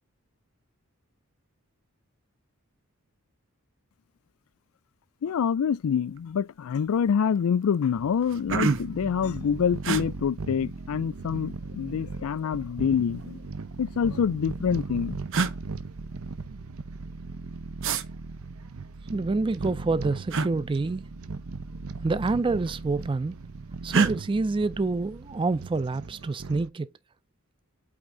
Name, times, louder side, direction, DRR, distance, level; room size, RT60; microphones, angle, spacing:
voice 1, 5.2-13.4 13.8-15.2, left 7 dB, 75° left, 0.4 m, -26 dB
sound 1, 6.1-6.4 6.7-7.2 7.7-7.8 8.1-9.0 9.8-10.0 11.3-11.9 13.1-13.9 14.8-14.9 15.3-15.6 17.8-18.0 20.3-20.5 21.9-22.1 22.4-23.0 23.9-24.1, right 4 dB, 65° right, 0.9 m, -27 dB
sound 2, 7.3-26.7, right 4 dB, 85° right, 0.7 m, -38 dB
voice 2, 19.1-21.0 22.0-23.3 23.8-26.9, right 3 dB, 25° right, 0.4 m, -27 dB
8.6 x 3.5 x 3.8 m
head